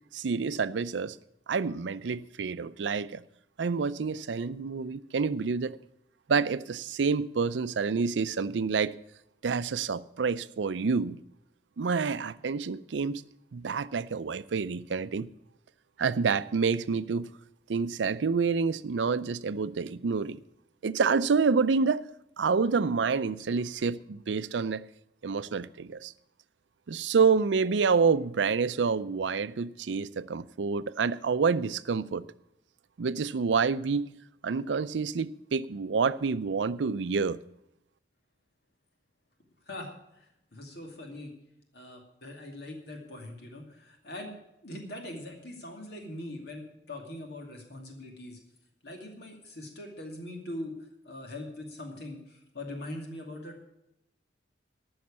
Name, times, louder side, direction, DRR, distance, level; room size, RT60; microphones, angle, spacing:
voice 1, 0.1-1.2 1.5-3.2 3.6-5.8 6.3-8.9 9.4-11.2 11.8-13.2 13.5-15.3 16.0-17.3 17.7-20.4 20.8-22.0 22.4-24.8 25.2-26.1 26.9-32.2 33.0-34.1 34.4-37.4, right 5 dB, 90° right, 0.5 m, -28 dB
voice 2, 39.7-40.3 40.5-41.3 41.7-44.4 44.6-48.4 48.8-50.8 51.0-53.6, left 1 dB, 65° left, 2.5 m, -42 dB
14.0 x 6.4 x 8.6 m
head